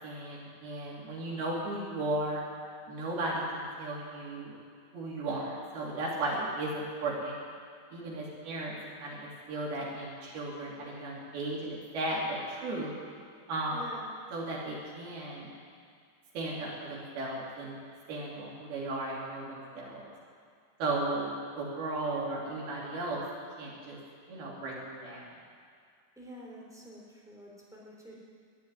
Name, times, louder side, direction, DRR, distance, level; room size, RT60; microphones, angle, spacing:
voice 1, 0.0-2.4 2.9-4.6 4.9-7.4 7.9-12.9 13.5-13.8 14.3-15.5 16.3-17.8 18.1-20.1 20.8-23.2 23.6-24.0 24.3-25.3, right 2 dB, 70° right, -4 dB, 4.9 m, -35 dB
voice 2, 13.7-14.0 26.1-28.1, equal, ahead, -4 dB, 3.0 m, -48 dB
12.5 x 10.5 x 9.7 m, 2.2 s
omnidirectional pair, 4.5 m